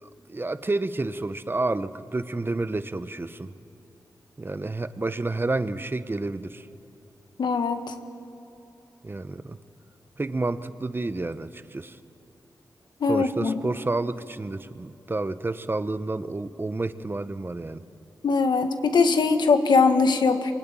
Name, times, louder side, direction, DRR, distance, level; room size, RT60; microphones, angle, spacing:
voice 1, 0.0-3.5 4.4-6.7 9.0-9.6 10.2-12.0 13.1-17.8, right 2 dB, 30° right, 12 dB, 1.0 m, -30 dB
voice 2, 7.4-7.9 13.0-13.5 18.2-20.5, left 4 dB, 80° left, 7 dB, 1.7 m, -21 dB
25.0 x 23.0 x 9.1 m, 2.8 s
cardioid pair, 60°, 7 cm